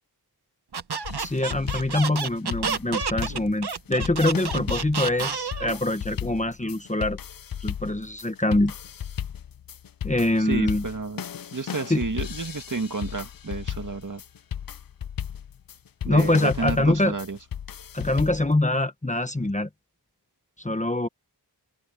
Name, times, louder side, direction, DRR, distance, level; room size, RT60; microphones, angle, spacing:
Squeak, 0.7-5.8, right 6 dB, 70° right, 1.3 m, -30 dB
sound 1, 1.0-18.5, left 9 dB, 55° left, 0.6 m, -35 dB
voice 1, 1.2-7.2 7.6-8.7 10.0-10.8 11.9-12.0 16.0-17.1 17.9-19.7 20.6-21.1, left 1 dB, 20° left, 1.2 m, -24 dB
voice 2, 10.4-11.2 11.5-14.2 16.1-17.4, right 4 dB, 50° right, 2.2 m, -31 dB
open air
wide cardioid pair, 75°, 41 cm